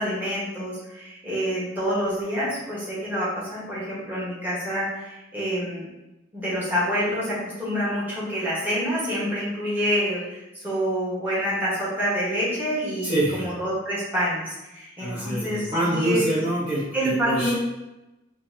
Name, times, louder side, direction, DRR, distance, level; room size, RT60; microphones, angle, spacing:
voice 1, 0.0-5.8 6.3-16.2 16.9-17.5, equal, 10° right, -9 dB, 1.5 m, -27 dB
voice 2, 13.0-13.5 15.0-17.5, right 1 dB, 30° right, -11 dB, 1.1 m, -26 dB
4.3 x 2.8 x 2.8 m, 0.98 s
head